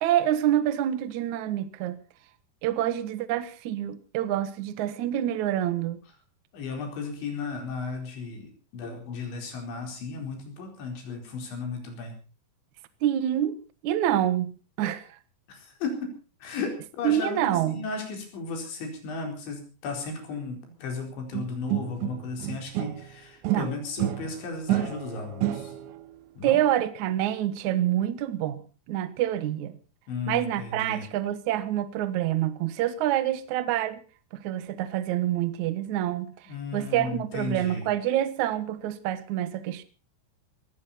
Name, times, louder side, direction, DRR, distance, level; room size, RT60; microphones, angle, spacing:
voice 1, 0.0-2.0 2.6-6.0 13.0-15.1 17.0-17.9 23.4-23.7 26.4-28.6 28.9-29.7 30.3-34.0 34.3-36.3 36.7-39.8, right 12 dB, 65° right, 2.0 m, -27 dB
voice 2, 6.5-12.2 15.5-16.1 16.4-25.7 26.4-26.6 30.1-31.0 36.5-37.9, left 4 dB, 80° left, 6.7 m, -35 dB
sound 1, 21.3-23.1 23.4-26.0, right 14 dB, 85° right, 3.4 m, -30 dB
20.0 x 16.0 x 4.3 m
omnidirectional pair, 5.2 m